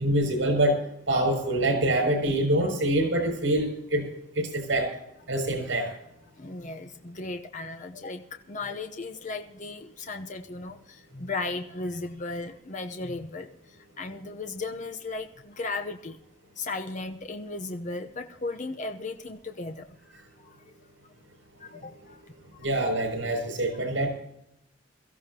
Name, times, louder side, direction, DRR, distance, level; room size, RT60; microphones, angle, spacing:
voice 1, 0.0-4.1 4.3-4.9 5.3-5.9 22.6-24.1, right 1 dB, 85° right, 5 dB, 6.6 m, -25 dB
voice 2, 6.4-16.2 16.6-19.9 20.4-20.7 21.6-22.2, left 3 dB, 40° left, 5 dB, 0.9 m, -36 dB
22.5 x 15.0 x 2.9 m, 0.80 s
head